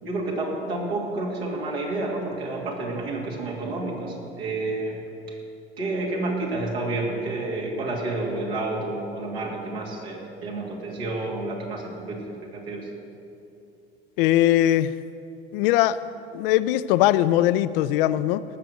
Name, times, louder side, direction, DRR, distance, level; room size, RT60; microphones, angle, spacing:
voice 1, 0.0-5.0 5.3-5.4 5.8-12.9, right 2 dB, 75° right, -2 dB, 2.7 m, -30 dB
voice 2, 14.2-14.9 15.5-16.0 16.3-18.4, left 13 dB, 60° left, 14 dB, 0.5 m, -20 dB
18.5 x 6.8 x 7.8 m, 2.7 s
figure-of-eight pair, 65°, 31 cm